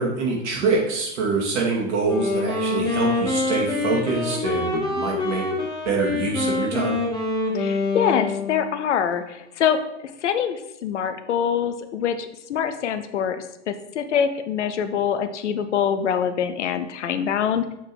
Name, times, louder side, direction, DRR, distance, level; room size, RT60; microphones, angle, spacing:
voice 1, 0.0-5.4 5.8-7.0, right 4 dB, 75° right, -2 dB, 2.6 m, -25 dB
Wind instrument woodwind instrument, 2.0-8.8, left 3 dB, 10° left, 1.5 m, -25 dB
voice 2, 7.5-17.7, left 8 dB, 75° left, 10 dB, 0.8 m, -25 dB
7.2 x 3.8 x 4.6 m, 0.85 s
hypercardioid pair, 110°, 35 cm